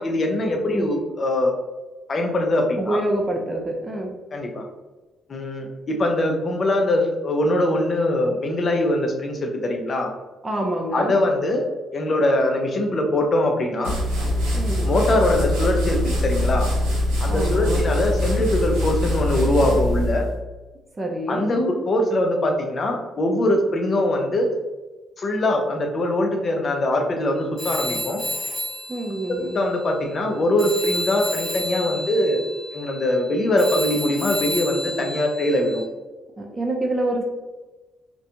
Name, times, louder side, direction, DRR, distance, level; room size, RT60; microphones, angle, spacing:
voice 1, 0.0-1.5 2.1-3.0 4.3-4.6 5.3-10.1 10.9-11.6 11.9-13.9 14.8-16.7 17.2-20.3 21.3-24.5 25.2-28.2 29.5-32.5 32.7-35.8, left 1 dB, 45° left, 2 dB, 0.5 m, -22 dB
voice 2, 2.8-4.2 10.4-11.2 14.5-14.9 17.3-17.9 20.9-21.5 28.9-29.6 36.4-37.2, right 1 dB, 30° right, 0 dB, 0.5 m, -27 dB
sound 1, 13.8-20.4, left 1 dB, 90° right, 0.6 m, -23 dB
Telephone, 27.6-30.3 30.6-35.8, left 1 dB, 65° left, 0.9 m, -31 dB
2.4 x 2.2 x 2.8 m, 1.1 s
hypercardioid pair, 50°, 0 cm